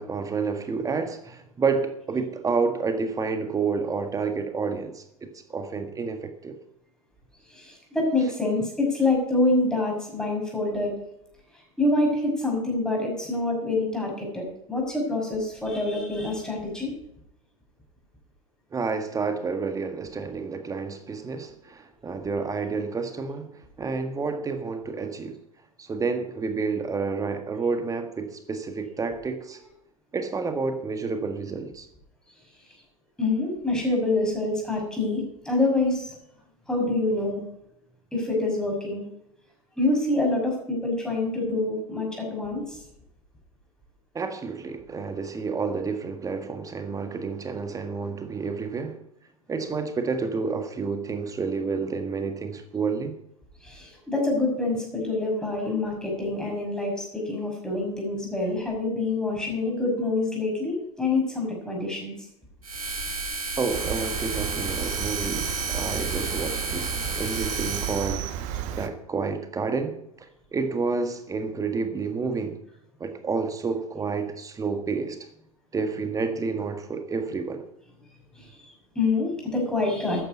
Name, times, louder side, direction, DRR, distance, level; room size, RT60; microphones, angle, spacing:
voice 1, 0.0-6.6 18.7-25.4 25.8-29.6 30.1-31.9 44.1-49.0 49.5-53.2 63.6-68.3 68.7-72.6 73.0-75.2 75.7-77.6, right 4 dB, 20° right, 1.7 m, -29 dB
voice 2, 7.5-10.9 11.5-16.9 33.2-36.1 36.7-37.4 38.1-39.0 39.8-42.8 53.6-62.1 78.4-80.2, left 2 dB, 5° left, 6.1 m, -26 dB
sound 1, 62.6-68.1, right 3 dB, 80° right, 3.4 m, -32 dB
Cricket, 63.7-68.9, right 10 dB, 45° right, 1.3 m, -33 dB
13.0 x 9.9 x 5.4 m
figure-of-eight pair, 80°, 18 cm